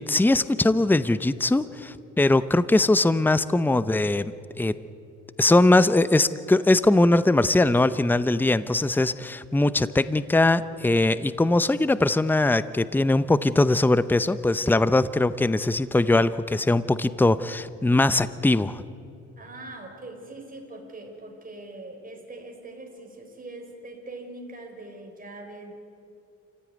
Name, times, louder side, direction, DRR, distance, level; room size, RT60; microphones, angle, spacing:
voice 1, 0.0-4.7 5.4-18.8, left 2 dB, 5° left, 15 dB, 0.7 m, -21 dB
voice 2, 19.4-25.7, right 2 dB, 30° right, 2 dB, 5.2 m, -42 dB
28.0 x 15.5 x 9.4 m, 2.7 s
cardioid pair, 90°, 30 cm